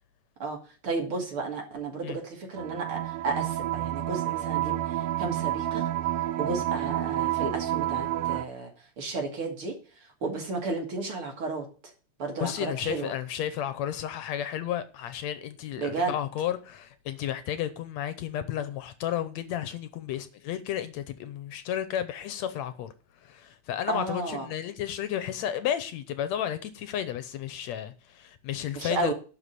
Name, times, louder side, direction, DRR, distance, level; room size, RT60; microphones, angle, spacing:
voice 1, 0.8-5.8 6.4-8.7 9.0-9.7 10.2-11.7 12.2-13.1 15.8-16.1 23.9-24.5 28.7-29.1, right 3 dB, 50° right, 3.1 m, -33 dB
sound 1, 2.6-8.4, right 13 dB, 85° right, 1.2 m, -29 dB
voice 2, 12.4-22.9 23.2-29.1, left 10 dB, 70° left, 2.1 m, -32 dB
11.5 x 4.9 x 8.2 m
omnidirectional pair, 3.3 m